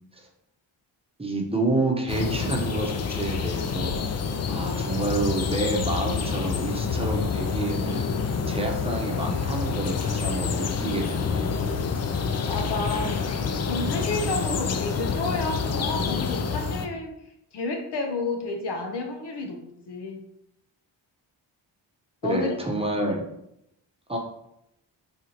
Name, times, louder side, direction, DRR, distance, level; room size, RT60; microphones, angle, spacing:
voice 1, 1.2-4.0 4.5-8.1 8.4-11.5 22.2-23.2 24.1-24.2, right 2 dB, 10° right, 0 dB, 0.9 m, -28 dB
Dutch forrest ambience, 2.1-16.9, left 5 dB, 35° left, 0.4 m, -27 dB
voice 2, 12.5-13.1 13.7-17.1 17.5-20.2 22.2-22.5, left 3 dB, 60° left, 3 dB, 0.7 m, -31 dB
4.4 x 2.4 x 2.9 m, 0.81 s
cardioid pair, 55°, 47 cm